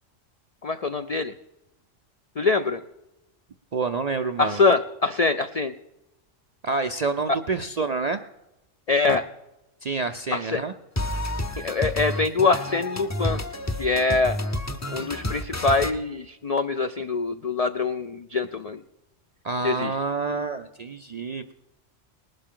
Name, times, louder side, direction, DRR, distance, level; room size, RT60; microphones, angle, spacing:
voice 1, 0.6-1.3 2.4-2.8 4.4-5.8 8.9-9.3 10.3-10.6 11.6-13.4 13.8-14.4 14.9-18.8 19.6-20.0, left 3 dB, 60° left, 8 dB, 0.4 m, -24 dB
voice 2, 3.7-4.6 6.6-8.2 9.8-10.7 19.4-21.5, right 4 dB, 55° right, 8 dB, 0.4 m, -28 dB
sound 1, 11.0-15.9, left 1 dB, 20° left, 0.6 m, -30 dB
19.5 x 12.0 x 3.8 m, 0.93 s
omnidirectional pair, 1.3 m